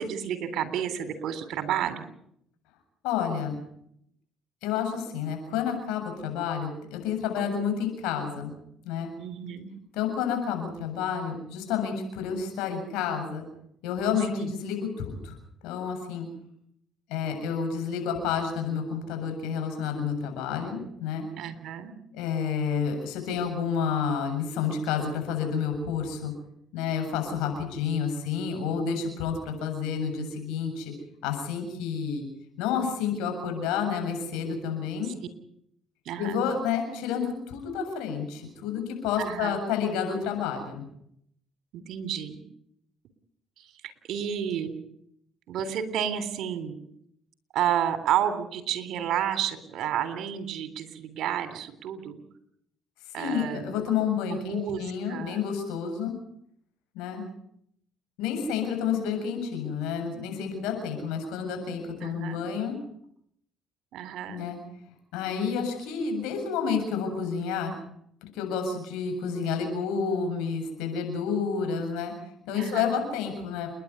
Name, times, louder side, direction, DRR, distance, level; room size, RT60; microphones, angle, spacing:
voice 1, 0.0-2.1 9.2-9.7 14.3-14.5 21.4-21.9 35.0-35.3 36.1-36.4 39.2-39.6 41.7-42.4 43.6-44.8 45.5-46.8 47.5-52.2 53.1-53.7 54.3-55.4 62.0-62.4 63.9-64.4 72.5-73.0, right 9 dB, 70° right, 10 dB, 3.5 m, -31 dB
voice 2, 3.0-3.6 4.6-8.5 8.8-9.1 9.9-13.4 13.8-15.4 15.6-16.3 17.1-21.2 22.1-26.3 26.7-30.9 31.2-32.3 32.6-35.1 36.2-40.8 53.2-56.1 56.9-57.2 58.2-62.8 64.3-64.6 65.1-67.8 68.3-72.1 72.5-73.7, left 6 dB, 85° left, 5 dB, 7.3 m, -30 dB
29.5 x 11.5 x 9.8 m, 0.73 s
supercardioid pair, 75°, 0 cm